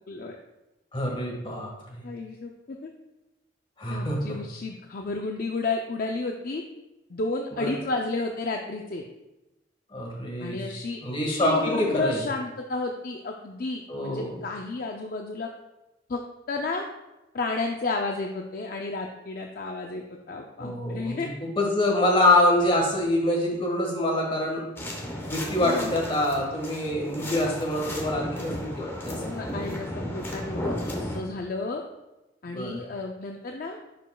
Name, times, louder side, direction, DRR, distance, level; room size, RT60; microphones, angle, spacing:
voice 1, 0.9-2.0 3.8-4.2 7.6-7.7 9.9-12.2 13.9-14.4 20.6-24.6 25.3-29.4 32.5-32.7, left 1 dB, 30° left, -1 dB, 1.6 m, -25 dB
voice 2, 2.0-2.9 3.9-6.6 7.1-9.0 10.4-11.0 11.4-15.5 16.1-16.2 16.5-16.8 17.3-21.3 25.6-26.0 29.2-31.8 32.4-33.8, left 3 dB, 50° left, 2 dB, 0.5 m, -32 dB
sound 1, 24.8-31.2, left 1 dB, 10° left, 1.0 m, -34 dB
11.0 x 5.2 x 2.3 m, 1.0 s
head